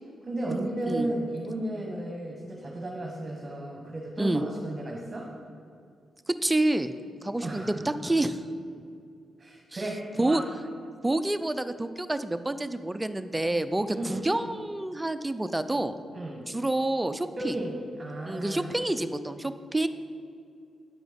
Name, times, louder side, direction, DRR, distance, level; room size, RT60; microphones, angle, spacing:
voice 1, 0.2-5.3 7.4-8.0 9.4-10.4 13.9-14.2 16.1-16.4 17.4-18.8, right 1 dB, 30° right, -1 dB, 1.3 m, -34 dB
voice 2, 6.3-6.9 7.2-8.4 9.7-9.8 10.2-10.4 11.0-15.9 16.5-17.6 18.3-19.9, right 2 dB, 10° right, 11 dB, 0.4 m, -28 dB
9.4 x 6.1 x 5.2 m, 2.4 s
cardioid pair, 95°, 0 cm